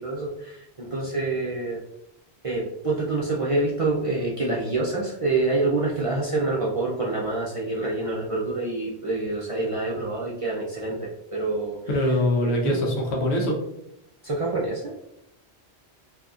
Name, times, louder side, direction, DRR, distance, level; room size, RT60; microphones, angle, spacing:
voice 1, 0.0-1.8 2.4-11.8 12.4-12.8 14.2-14.9, right 2 dB, 45° right, -4 dB, 0.4 m, -27 dB
voice 2, 11.9-13.5, left 1 dB, 80° left, 0 dB, 1.1 m, -23 dB
3.8 x 2.7 x 2.3 m, 0.80 s
omnidirectional pair, 1.1 m